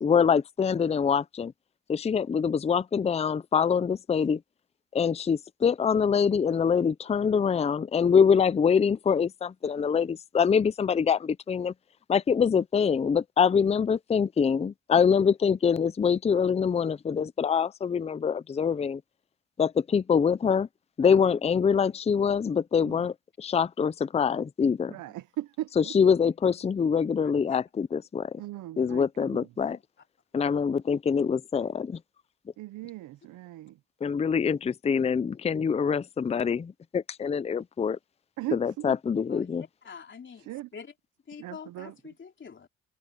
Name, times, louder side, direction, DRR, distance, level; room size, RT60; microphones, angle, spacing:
voice 1, 0.0-1.5 1.9-4.4 4.9-11.7 12.1-19.0 19.6-20.7 21.0-25.0 25.8-28.4 28.8-29.8 30.3-32.0 34.0-38.0 38.5-39.7, left 6 dB, 20° left, 0.5 m, -25 dB
voice 2, 24.9-26.0 28.4-29.5 32.6-33.8 38.4-39.0 40.3-40.7 41.4-42.0, right 15 dB, 80° right, 0.7 m, -38 dB
voice 3, 27.2-27.6 29.7-29.8 39.3-40.9 41.3-42.7, left 6 dB, 40° left, 3.7 m, -46 dB
cardioid pair, 90°, 30 cm